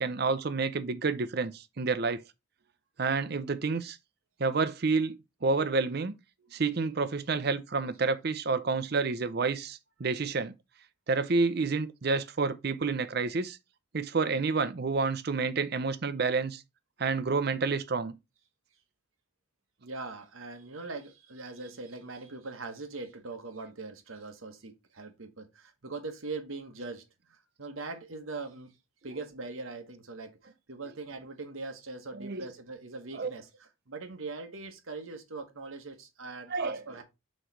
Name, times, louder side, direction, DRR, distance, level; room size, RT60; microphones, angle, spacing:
voice 1, 0.0-2.2 3.0-4.0 4.4-6.1 6.5-10.5 11.1-13.6 13.9-16.6 17.0-18.2 32.2-32.4 33.1-33.3 36.5-36.8, right 4 dB, 50° right, 0.6 m, -29 dB
voice 2, 19.8-28.8 29.0-30.4 30.7-37.0, right 3 dB, 90° right, 1.3 m, -41 dB
6.4 x 3.2 x 4.5 m
head